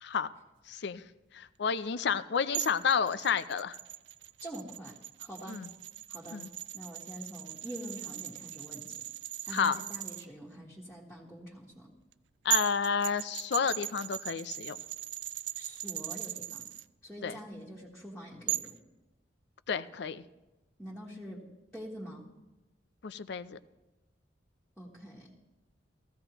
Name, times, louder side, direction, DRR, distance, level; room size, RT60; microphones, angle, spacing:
voice 1, 0.0-0.3 0.7-1.0 1.3-3.8 5.5-5.7 6.3-6.5 9.5-9.8 12.4-14.8 17.2-17.4 19.7-20.2 23.0-23.6, left 6 dB, 65° left, 15 dB, 0.5 m, -31 dB
sound 1, 2.5-10.2 12.1-12.2 12.5-16.8 18.5-18.8, right 15 dB, 70° right, 0.4 m, -38 dB
voice 2, 4.4-5.6 6.1-6.4 6.7-9.0 9.4-11.9 15.5-16.7 17.0-18.8 20.8-21.4 21.7-22.3 24.8-25.3, equal, 5° left, -6 dB, 1.4 m, -45 dB
15.5 x 15.0 x 3.0 m, 1.1 s
head